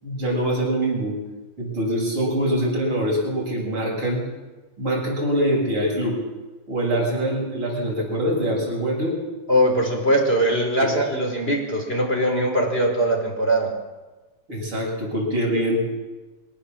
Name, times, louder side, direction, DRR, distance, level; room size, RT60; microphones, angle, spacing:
voice 1, 0.0-1.2 1.6-4.2 4.8-6.2 6.7-9.1 10.8-10.9 14.5-15.8, equal, 85° right, -2 dB, 8.4 m, -24 dB
voice 2, 9.5-13.7, equal, 25° left, 1 dB, 4.6 m, -21 dB
23.5 x 18.0 x 7.5 m, 1.2 s
omnidirectional pair, 2.3 m